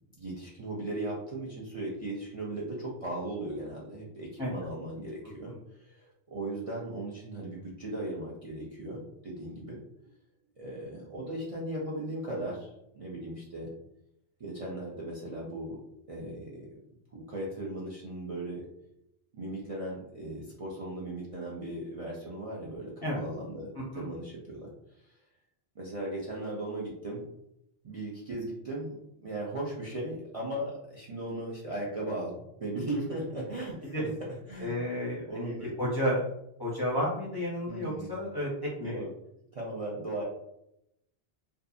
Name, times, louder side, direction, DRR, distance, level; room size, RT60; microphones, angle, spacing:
voice 1, 0.2-9.8 10.6-13.7 14.4-15.8 16.1-16.7 17.1-18.6 19.3-24.7 25.0-25.1 25.8-27.2 27.8-34.0 34.5-34.8 35.3-35.7 37.7-38.1 38.8-39.1 39.5-40.2, right 1 dB, 45° right, -6 dB, 0.5 m, -37 dB
voice 2, 34.6-36.2 36.6-39.0, equal, 25° left, -6 dB, 0.5 m, -32 dB
2.6 x 2.4 x 2.4 m, 0.80 s
omnidirectional pair, 1.1 m